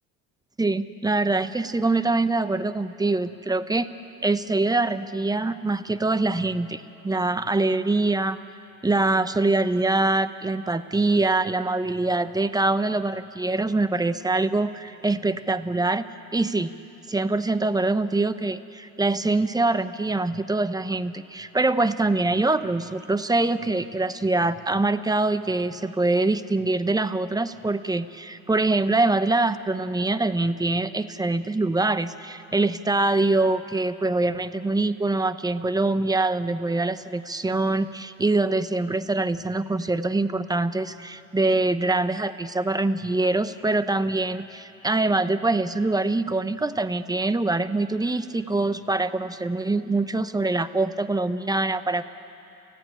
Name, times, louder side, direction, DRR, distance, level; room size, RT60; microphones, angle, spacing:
voice 1, 0.6-3.9 4.2-8.4 8.8-16.7 17.1-52.1, right 2 dB, 10° right, 12 dB, 0.8 m, -24 dB
29.0 x 15.0 x 9.3 m, 3.0 s
supercardioid pair, 95°, 37 cm